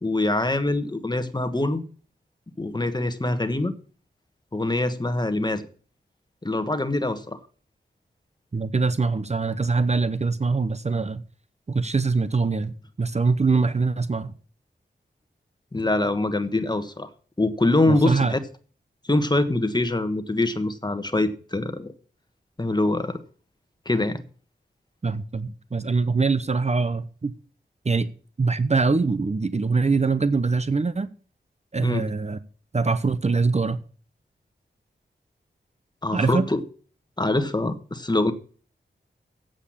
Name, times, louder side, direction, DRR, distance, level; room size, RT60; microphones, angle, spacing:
voice 1, 0.0-1.8 2.6-3.7 4.5-5.7 6.4-7.4 15.7-17.1 17.4-18.4 19.1-21.9 22.6-23.2 23.8-24.2 31.8-32.0 36.0-36.6 37.2-38.3, left 2 dB, 25° left, 1.3 m, -24 dB
voice 2, 8.5-11.2 11.7-14.3 17.9-18.3 25.0-27.3 27.8-28.1 28.4-31.1 31.7-32.4 32.7-33.8 36.1-36.5, right 4 dB, 35° right, 0.7 m, -23 dB
8.2 x 7.7 x 8.6 m
wide cardioid pair, 70°, 19 cm